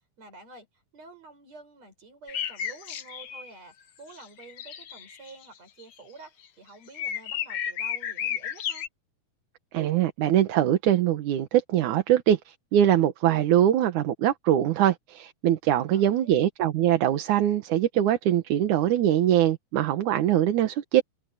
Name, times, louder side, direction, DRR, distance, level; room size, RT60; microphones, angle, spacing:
voice 1, 0.2-8.9 15.9-16.4, right 3 dB, 50° right, 8.0 m, -49 dB
sound 1, 2.3-3.5 4.1-5.4 5.8-6.0 6.4-6.5 6.9-8.9, left 8 dB, 60° left, 1.6 m, -33 dB
voice 2, 9.7-21.0, right 11 dB, 70° right, 2.5 m, -23 dB
omnidirectional pair, 3.9 m